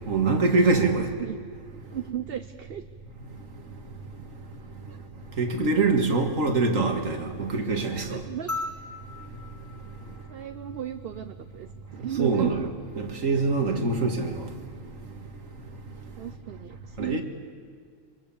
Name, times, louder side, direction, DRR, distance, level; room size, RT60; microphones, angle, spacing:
voice 1, 0.1-1.1 5.4-8.2 12.2-12.7 13.0-14.4 17.0-17.2, right 3 dB, 70° right, 2.3 m, -24 dB
voice 2, 1.9-2.8 4.9-5.0 8.1-8.5 10.3-12.7 16.2-17.2, right 10 dB, 50° right, 0.9 m, -35 dB
sound 1, 8.5-11.0 12.7-12.8, left 2 dB, 10° left, 2.0 m, -38 dB
26.0 x 22.0 x 7.2 m
omnidirectional pair, 1.4 m